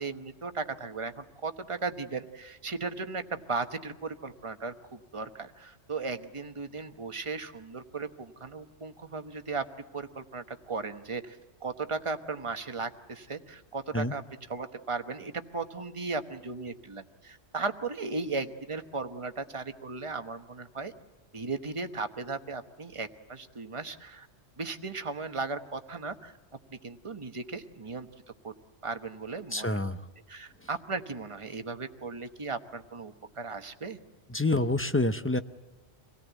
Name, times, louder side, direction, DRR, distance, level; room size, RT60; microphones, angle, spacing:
voice 1, 0.0-9.7 9.9-14.2 14.5-20.9 21.3-24.3 24.6-26.3 26.8-28.1 28.4-28.5 28.8-29.8 30.3-34.0, right 4 dB, 25° right, 8 dB, 1.1 m, -36 dB
voice 2, 29.5-30.0 34.3-35.4, left 2 dB, 15° left, 10 dB, 0.5 m, -27 dB
25.5 x 17.5 x 8.2 m, 1.3 s
omnidirectional pair, 1.2 m